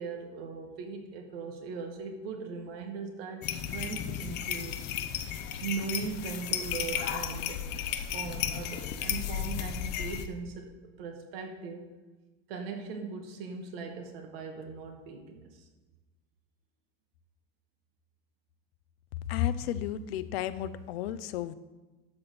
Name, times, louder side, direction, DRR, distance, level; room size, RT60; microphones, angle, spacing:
voice 1, 0.0-4.7 5.6-7.6 8.1-10.7 11.0-11.9 12.5-15.6, right 5 dB, 75° right, 3 dB, 2.0 m, -39 dB
sound 1, 3.4-10.3, left 9 dB, 35° left, 0.7 m, -34 dB
voice 2, 19.3-21.5, left 11 dB, 85° left, 14 dB, 0.7 m, -32 dB
12.0 x 4.2 x 6.8 m, 1.2 s
supercardioid pair, 160°, 30 cm